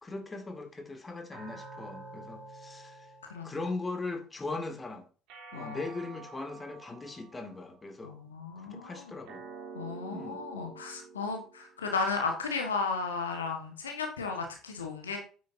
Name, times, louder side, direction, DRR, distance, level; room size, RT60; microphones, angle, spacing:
voice 1, 0.0-3.1 3.4-5.1 5.5-8.1 8.6-9.5 10.1-10.4, left 3 dB, 20° left, 2.2 m, -39 dB
sound 1, 1.3-3.9 5.3-7.8 9.3-11.9, right 4 dB, 60° right, 3.2 m, -48 dB
voice 2, 5.5-5.8 8.0-8.9 9.7-15.2, left 4 dB, 80° left, 1.5 m, -34 dB
9.2 x 8.5 x 2.7 m
figure-of-eight pair, 55°, 0 cm